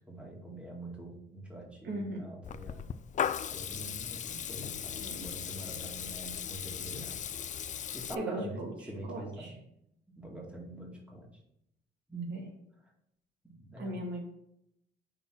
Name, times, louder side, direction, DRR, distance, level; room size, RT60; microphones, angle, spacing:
voice 1, 0.1-2.9 3.5-7.2 7.9-9.6 10.1-11.3 12.1-12.3 13.4-14.0, right 1 dB, 5° right, -2 dB, 2.1 m, -44 dB
voice 2, 1.8-2.2 5.0-5.2 8.1-9.5 12.3-12.4 13.8-14.2, right 1 dB, 65° right, -1 dB, 2.0 m, -38 dB
Water tap faucet / Liquid, 2.4-8.1, left 8 dB, 40° left, 0.4 m, -37 dB
5.8 x 3.9 x 5.9 m, 0.77 s
cardioid pair, 90°, 20 cm